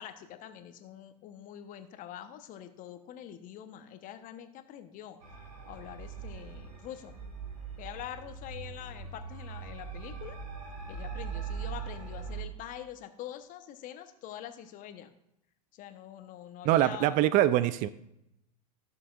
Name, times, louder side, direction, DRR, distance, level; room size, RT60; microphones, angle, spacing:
voice 1, 0.0-5.2 5.7-7.1 7.8-10.4 10.9-15.1 15.7-17.2, left 11 dB, 40° left, 9 dB, 1.0 m, -45 dB
sound 1, 5.2-12.4, right 6 dB, 75° right, 2.7 m, -41 dB
voice 2, 16.7-17.9, right 13 dB, 40° right, 16 dB, 0.5 m, -24 dB
15.5 x 6.8 x 2.5 m, 0.82 s
hypercardioid pair, 90°, 21 cm